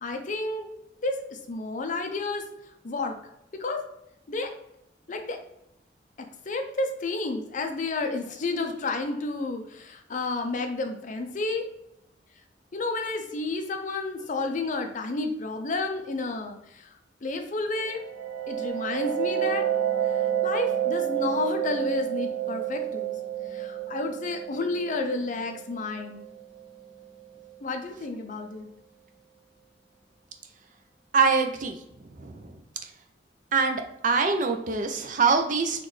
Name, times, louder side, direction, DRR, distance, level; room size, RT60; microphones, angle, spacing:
voice 1, 0.0-0.7 1.0-2.4 2.8-3.2 3.5-3.8 4.3-4.5 5.1-5.4 6.5-11.7 12.7-16.9 17.2-18.0 18.5-19.7 20.1-23.1 23.5-26.2 27.6-28.7, left 3 dB, 45° left, 5 dB, 0.5 m, -31 dB
sound 1, 17.8-27.3, right 11 dB, 75° right, 1.2 m, -30 dB
voice 2, 31.1-31.8 32.2-32.5 33.5-35.9, right 4 dB, 45° right, 5 dB, 0.5 m, -24 dB
4.0 x 3.1 x 3.2 m, 0.83 s
head